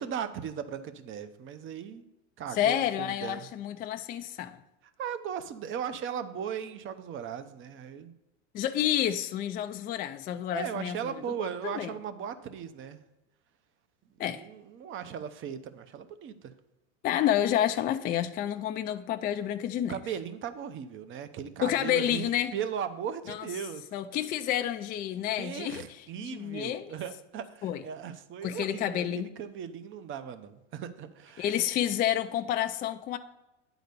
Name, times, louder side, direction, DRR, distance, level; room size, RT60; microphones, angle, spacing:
voice 1, 0.0-2.0 2.4-3.5 5.0-8.1 10.5-13.0 14.3-16.5 19.9-23.8 25.4-31.5, right 8 dB, 35° right, 0.8 m, -37 dB
voice 2, 2.5-4.6 8.5-11.9 14.2-14.4 17.0-19.9 21.6-22.5 23.3-23.5 23.9-25.8 26.2-26.9 27.6-27.8 28.4-29.3 31.4-33.2, left 11 dB, 25° left, 0.4 m, -29 dB
9.3 x 4.0 x 6.8 m
supercardioid pair, 110°, 36 cm